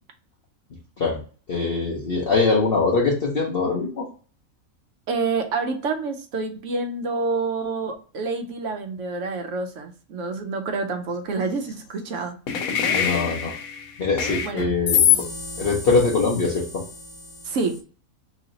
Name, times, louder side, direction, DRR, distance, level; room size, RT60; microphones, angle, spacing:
voice 1, 1.5-4.1 12.9-13.5 14.0-15.1 15.6-16.6, left 3 dB, 50° left, -4 dB, 0.9 m, -22 dB
voice 2, 5.1-12.3 14.4-14.7 17.4-17.8, right 4 dB, 65° right, 4 dB, 0.9 m, -28 dB
sound 1, 12.5-17.8, left 8 dB, 80° left, 1.0 m, -25 dB
3.1 x 2.8 x 3.8 m, 0.39 s
omnidirectional pair, 1.5 m